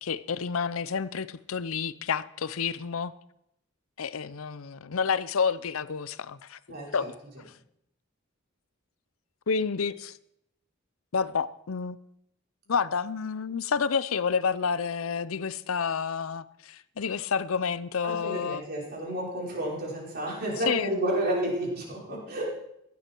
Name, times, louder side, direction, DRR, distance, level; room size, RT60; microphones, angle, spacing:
voice 1, 0.0-3.1 4.0-7.1 7.4-7.5 9.5-10.2 11.1-12.0 12.7-18.6 20.7-21.0, left 6 dB, 90° left, 0.6 m, -29 dB
voice 2, 6.7-7.1 18.0-22.5, right 1 dB, 50° right, 5.2 m, -31 dB
16.0 x 12.0 x 4.6 m
head